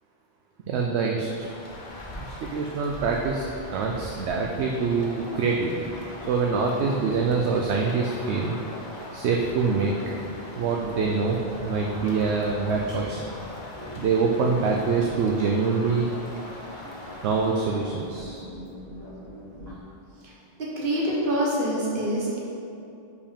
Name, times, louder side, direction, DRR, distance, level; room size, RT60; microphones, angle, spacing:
voice 1, 0.7-1.5 2.1-3.4 3.7-5.8 6.3-8.6 9.1-9.9 10.6-11.4 11.6-13.2 14.0-16.1 17.2-18.5, right 4 dB, 70° right, 0 dB, 0.8 m, -25 dB
Rain, 1.2-18.2, left 1 dB, 45° left, 1.0 m, -42 dB
sound 1, 5.0-19.7, equal, 15° left, 1.6 m, -43 dB
voice 2, 20.8-22.4, equal, 50° right, -4 dB, 1.4 m, -26 dB
5.1 x 4.9 x 5.1 m, 2.7 s
omnidirectional pair, 1.2 m